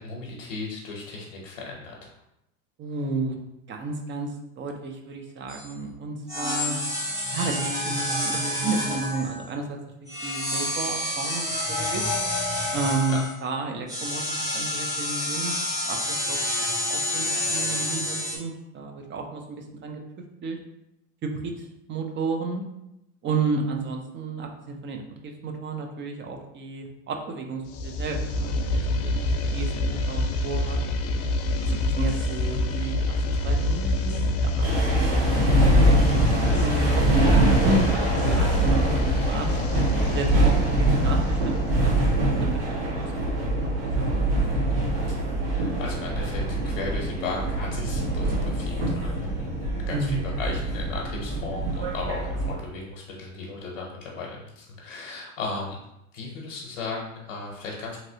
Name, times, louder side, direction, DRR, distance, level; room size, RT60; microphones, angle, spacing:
voice 1, 0.0-2.1 13.1-13.2 45.4-55.8 56.1-58.0, left 3 dB, 85° left, -2 dB, 0.8 m, -36 dB
voice 2, 2.8-3.4 3.7-6.8 7.3-12.0 12.7-15.5 15.8-16.4 16.9-20.0 20.4-20.6 21.2-21.5 21.9-22.6 23.2-30.8 31.6-36.3 36.6-36.9 37.3-38.5 38.8-39.5 40.1-42.0 42.5-44.2 49.9-50.3, right 3 dB, 30° right, 3 dB, 0.5 m, -32 dB
sound 1, 5.5-5.7 6.3-9.5 10.1-13.3 13.9-18.4, left 1 dB, 10° right, 1.0 m, -28 dB
sound 2, 27.7-42.5, left 1 dB, 40° left, 0.4 m, -27 dB
sound 3, 34.6-52.5, right 1 dB, 70° right, 1.3 m, -24 dB
2.9 x 2.8 x 2.7 m, 0.86 s
hypercardioid pair, 95°, 38 cm